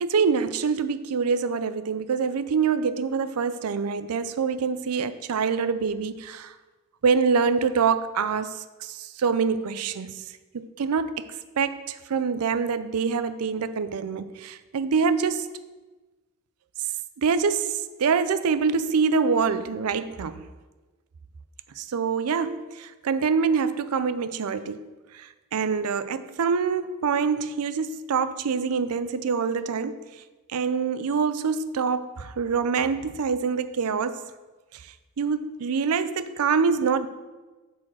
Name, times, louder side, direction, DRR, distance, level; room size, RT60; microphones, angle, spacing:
voice 1, 0.0-6.5 7.0-10.1 10.5-11.3 11.6-15.5 17.2-20.5 21.8-30.0 30.5-34.2 34.7-34.9 35.2-37.1, right 5 dB, 85° right, 13 dB, 0.5 m, -25 dB
8.5 x 4.3 x 6.2 m, 1.2 s
head